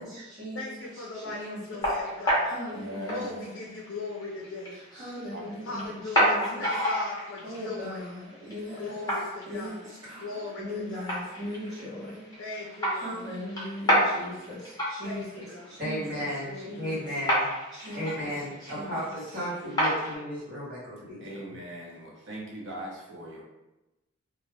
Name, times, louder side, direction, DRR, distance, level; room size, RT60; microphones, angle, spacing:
voice 1, 0.0-0.7 1.1-1.8 2.5-3.5 4.7-6.7 7.4-9.1 9.5-12.3 12.9-16.3 16.5-17.1 17.7-18.2 18.6-18.9, left 1 dB, 20° right, -13 dB, 1.0 m, -39 dB
voice 2, 0.5-2.6 3.1-4.8 5.7-8.1 8.8-9.9 10.2-11.2 12.4-13.3 15.0-15.8 16.4-17.0, left 3 dB, 60° left, -2 dB, 0.4 m, -39 dB
sound 1, 0.8-20.1, equal, 20° left, 0.8 m, -32 dB
voice 3, 2.7-3.4 5.3-5.9 21.2-23.4, right 1 dB, 70° right, -3 dB, 0.7 m, -40 dB
voice 4, 15.8-17.5 17.9-21.4, equal, 45° right, -9 dB, 1.3 m, -34 dB
2.3 x 2.3 x 3.2 m, 1.0 s
head